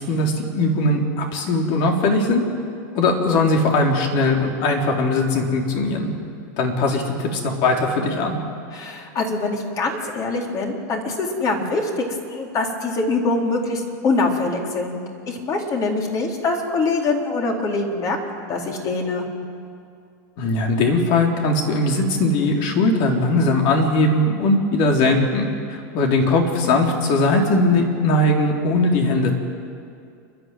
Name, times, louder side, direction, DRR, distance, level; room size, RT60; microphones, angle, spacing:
voice 1, 0.1-2.4 2.9-6.1 6.6-8.4 20.4-29.4, left 2 dB, 55° left, 1 dB, 3.9 m, -20 dB
voice 2, 8.7-19.3, left 3 dB, 35° left, 1 dB, 3.9 m, -24 dB
29.0 x 12.0 x 9.4 m, 2.4 s
supercardioid pair, 115°, 10 cm